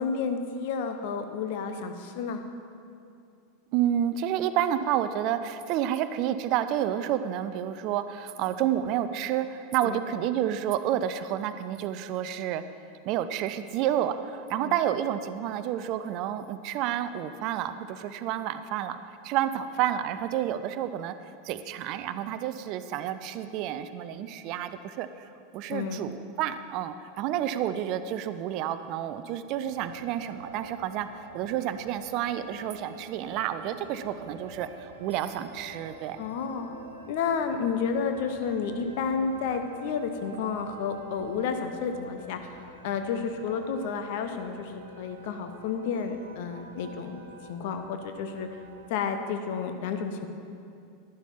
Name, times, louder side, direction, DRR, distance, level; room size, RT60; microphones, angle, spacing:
voice 1, 0.0-2.4 9.8-10.0 14.6-14.7 25.7-26.0 36.2-36.8 37.1-42.4 42.8-44.7 45.0-47.2 47.5-48.5 48.9-50.3, left 6 dB, 55° left, 7 dB, 0.9 m, -31 dB
voice 2, 3.7-12.6 13.1-19.0 19.2-21.1 21.4-31.1 31.3-36.2, right 11 dB, 45° right, 11 dB, 0.5 m, -30 dB
sound 1, 29.6-48.9, right 3 dB, 75° right, 0.9 m, -48 dB
11.0 x 11.0 x 4.3 m, 2.5 s
figure-of-eight pair, 85°, 0 cm